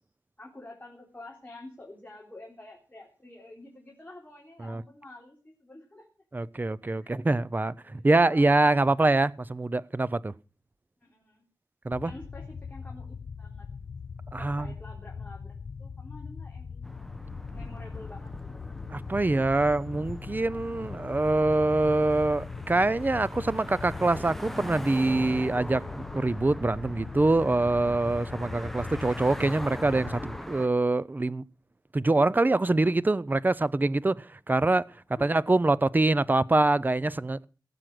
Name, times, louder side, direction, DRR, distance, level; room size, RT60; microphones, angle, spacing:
voice 1, 0.4-6.1 7.0-7.3 7.8-9.2 11.0-11.4 12.0-13.7 14.4-16.9 17.3-18.7 35.1-35.4, left 2 dB, 20° left, 3.6 m, -49 dB
voice 2, 6.3-10.3 11.8-12.1 14.3-14.7 18.9-31.4 31.9-34.9 35.2-37.5, right 2 dB, 25° right, 0.5 m, -25 dB
sound 1, 11.9-30.4, left 5 dB, 65° left, 0.6 m, -41 dB
sound 2, 16.8-30.7, equal, 5° left, 1.0 m, -41 dB
18.0 x 7.8 x 6.0 m
wide cardioid pair, 110°, 8 cm